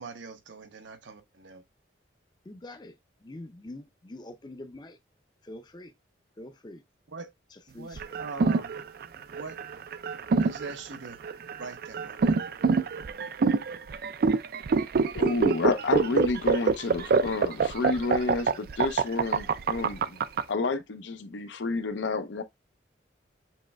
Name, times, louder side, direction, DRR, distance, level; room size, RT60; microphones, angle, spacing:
voice 1, 0.0-1.6 7.1-7.3 7.7-8.8 9.3-9.6 10.4-11.2 11.6-12.4, right 4 dB, 85° right, 0.8 m, -42 dB
voice 2, 2.5-5.0 5.4-5.9 6.4-6.8 7.7-8.0, left 1 dB, 25° left, 0.5 m, -44 dB
sound 1, 8.0-20.4, right 4 dB, 55° right, 0.3 m, -25 dB
voice 3, 15.1-20.2 20.5-22.4, left 3 dB, 80° left, 0.6 m, -30 dB
7.4 x 3.2 x 2.2 m
head